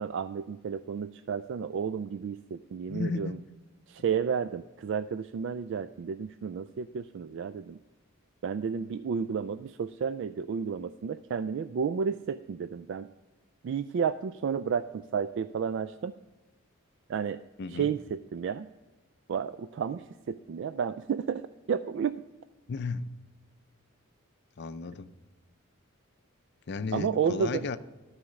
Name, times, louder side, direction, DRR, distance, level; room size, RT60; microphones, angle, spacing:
voice 1, 0.0-3.4 3.9-7.8 8.4-13.1 13.6-16.1 17.1-17.4 17.7-18.7 19.3-21.4 21.7-22.1 26.9-27.7, right 6 dB, 60° right, 0.3 m, -32 dB
voice 2, 2.9-3.4 17.6-17.9 22.7-23.2 24.6-25.1 26.7-27.8, left 4 dB, 55° left, 0.5 m, -34 dB
13.0 x 4.9 x 6.4 m
head